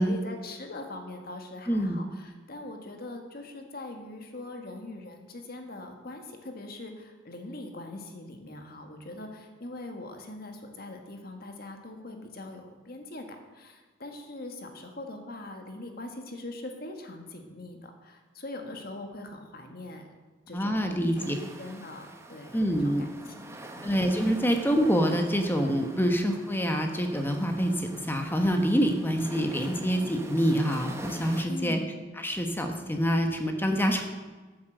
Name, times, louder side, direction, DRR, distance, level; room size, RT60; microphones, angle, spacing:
voice 1, 0.0-20.1 20.5-23.9 31.5-32.0 33.9-34.0, left 2 dB, 55° left, 4 dB, 1.7 m, -42 dB
voice 2, 1.7-2.0 20.5-21.3 22.5-23.1 23.8-31.8 32.2-34.0, equal, 10° left, 4 dB, 1.1 m, -26 dB
sound 1, 21.1-31.4, right 1 dB, 15° right, 1.2 m, -45 dB
13.0 x 7.5 x 7.9 m, 1.3 s
head